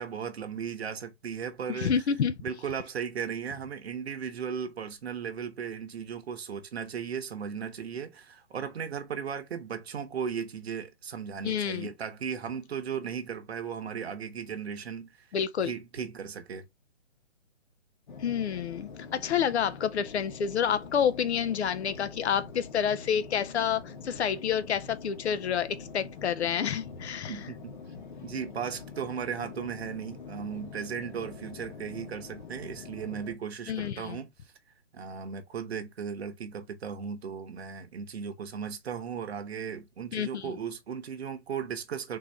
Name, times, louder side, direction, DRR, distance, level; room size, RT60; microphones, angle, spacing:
voice 1, 0.0-1.9 2.4-15.3 15.6-16.7 27.3-27.7 28.2-34.3 34.9-42.2, right 7 dB, 60° right, 0.9 m, -36 dB
voice 2, 1.7-2.3 11.4-11.9 15.3-15.7 18.2-27.4 33.7-34.2 40.1-40.5, left 8 dB, 65° left, 0.6 m, -29 dB
sound 1, 18.1-33.3, left 4 dB, 40° left, 1.0 m, -44 dB
3.9 x 2.7 x 3.0 m
hypercardioid pair, 165°, 36 cm